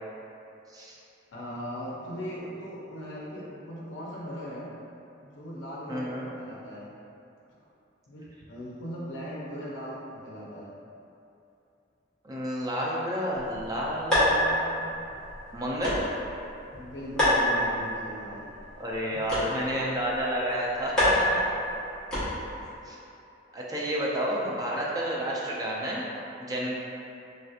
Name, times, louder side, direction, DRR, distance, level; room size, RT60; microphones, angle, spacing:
voice 1, 0.7-1.0 5.9-6.3 12.2-14.9 15.5-16.0 18.8-21.4 22.9-23.0 23.5-26.0 26.4-26.7, equal, 20° right, -5 dB, 0.4 m, -30 dB
voice 2, 1.3-4.7 5.2-6.9 7.5-7.6 8.1-10.7 16.7-18.5 19.0-19.8 22.3-22.5, equal, 70° left, -5 dB, 0.5 m, -39 dB
sound 1, 13.4-22.7, equal, 5° left, 1.0 m, -29 dB
3.2 x 2.7 x 2.3 m, 2.7 s
head